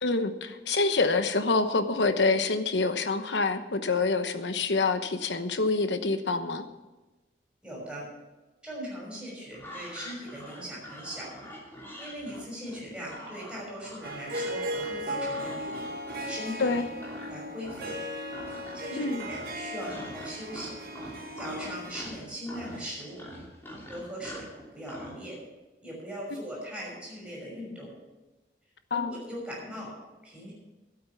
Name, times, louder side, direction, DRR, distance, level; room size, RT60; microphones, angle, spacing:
voice 1, 0.0-6.7 16.6-16.9 19.0-19.2 28.9-29.1, left 3 dB, 90° left, 9 dB, 1.0 m, -26 dB
voice 2, 7.6-8.1 8.6-11.3 12.0-15.8 16.3-16.8 17.3-17.9 18.7-20.8 21.4-23.2 23.9-24.5 24.7-25.4 25.8-27.9 28.9-29.9 30.2-30.5, equal, 5° right, -4 dB, 5.9 m, -40 dB
sound 1, 9.5-17.3 17.6-18.0 18.3-18.9 19.2-25.2, equal, 15° left, 3.0 m, -44 dB
Harp, 14.0-22.0, equal, 55° right, 1.7 m, -37 dB
12.5 x 8.8 x 7.1 m, 1.1 s
head